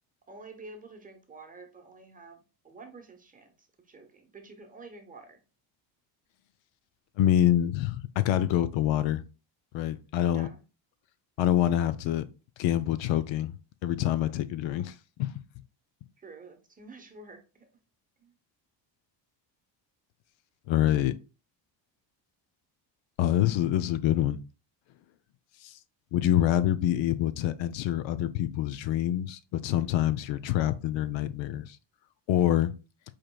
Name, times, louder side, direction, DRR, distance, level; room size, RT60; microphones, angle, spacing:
voice 1, 0.3-5.4 10.3-10.6 16.2-17.7 18.2-18.3, right 3 dB, 15° right, 0.8 m, -49 dB
voice 2, 7.2-9.2 9.7-10.5 11.4-12.2 12.6-13.5 13.8-15.3 20.7-21.1 23.2-24.4 25.6-25.8 26.1-31.8 32.3-32.7, left 12 dB, 70° left, 0.5 m, -26 dB
5.0 x 4.4 x 2.2 m
cardioid pair, 145°, 47 cm